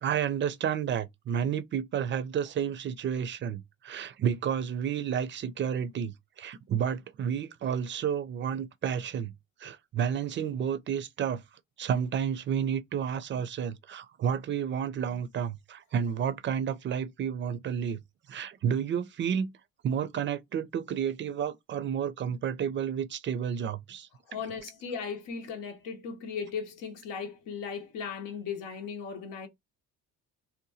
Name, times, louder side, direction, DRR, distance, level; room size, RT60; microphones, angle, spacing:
voice 1, 0.0-9.3 9.6-11.4 11.8-18.0 18.3-19.5 19.8-24.1, right 8 dB, 40° right, 0.4 m, -31 dB
voice 2, 24.3-29.5, left 6 dB, 85° left, 0.8 m, -37 dB
2.7 x 2.2 x 2.6 m
cardioid pair, 120°, 31 cm